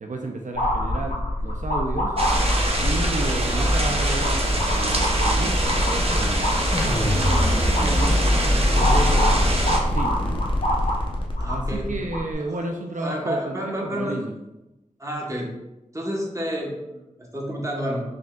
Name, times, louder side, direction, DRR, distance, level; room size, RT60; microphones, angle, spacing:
voice 1, 0.0-2.2 2.8-8.2 8.7-10.4 11.0-11.1 11.5-14.4, right 2 dB, 75° right, 2 dB, 0.4 m, -32 dB
sound 1, 0.5-12.3, left 1 dB, 75° left, 1.0 m, -26 dB
sound 2, 2.2-9.8, right 1 dB, 50° right, 0.8 m, -24 dB
sound 3, 6.7-11.8, left 1 dB, 40° left, 0.7 m, -24 dB
voice 2, 11.4-11.9 12.4-12.6 13.0-14.2 15.0-15.5 15.9-18.0, equal, 25° right, -2 dB, 1.0 m, -30 dB
5.0 x 3.4 x 2.3 m, 0.97 s
wide cardioid pair, 55°, 13 cm